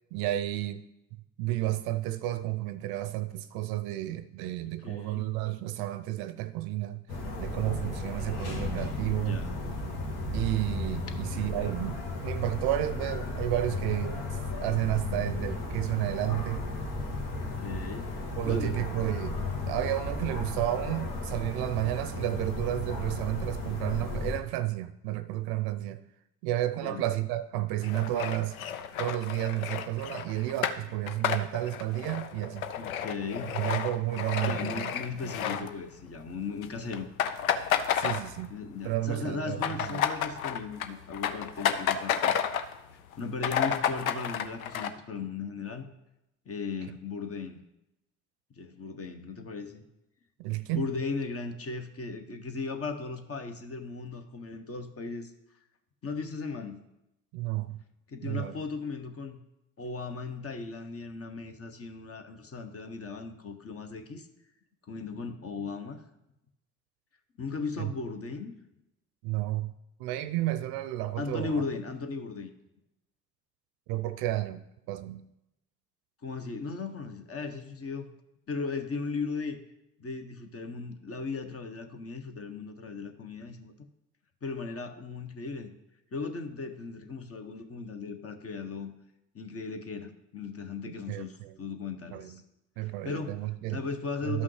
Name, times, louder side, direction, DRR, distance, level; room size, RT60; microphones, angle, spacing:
voice 1, 0.1-0.8 1.4-7.0 7.4-9.4 10.3-14.2 14.6-16.7 18.4-26.0 26.4-28.6 29.0-32.7 33.5-34.9 35.2-35.3 37.9-38.5 38.8-40.0 50.4-50.9 57.3-57.8 58.2-58.5 67.8-67.9 69.2-69.7 70.0-71.6 73.9-75.2 90.9-91.6 92.1-92.4 92.8-93.8 94.2-94.4, right 15 dB, 60° right, 0.6 m, -31 dB
voice 2, 4.8-5.3 9.1-9.6 17.6-18.1 18.4-18.8 26.8-27.0 32.8-33.6 34.4-37.1 38.5-42.3 43.2-45.9 46.5-47.6 48.5-49.8 50.7-55.3 56.0-56.8 58.1-59.4 59.8-64.3 64.9-66.0 67.4-68.5 71.2-72.5 76.2-78.1 78.5-79.6 80.0-83.7 84.4-85.7 86.1-88.9 89.3-92.4 92.8-93.4 93.7-94.4, left 4 dB, 35° left, 1.1 m, -37 dB
sound 1, 7.1-24.4, left 2 dB, 60° left, 1.7 m, -34 dB
sound 2, 27.8-36.2 36.5-36.7 36.9-38.7 39.0-42.8 43.1-43.2 43.4-44.9, left 8 dB, 85° left, 0.5 m, -31 dB
12.5 x 5.6 x 3.2 m
figure-of-eight pair, 50°, 41 cm